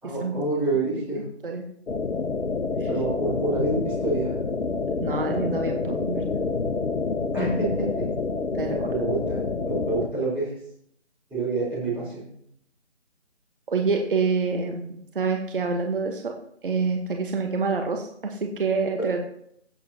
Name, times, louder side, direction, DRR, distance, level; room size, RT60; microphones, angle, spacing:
voice 1, 0.0-1.2 2.8-4.4 7.3-8.0 8.9-10.5 11.3-12.3, right 2 dB, 5° right, -11 dB, 3.7 m, -27 dB
sound 1, 1.9-10.1, left 4 dB, 90° left, 1.0 m, -28 dB
voice 2, 5.0-6.2 8.5-8.9 13.7-16.4 16.6-19.2, right 4 dB, 50° right, 3 dB, 1.2 m, -27 dB
16.5 x 7.4 x 2.8 m, 0.70 s
figure-of-eight pair, 165°, 35 cm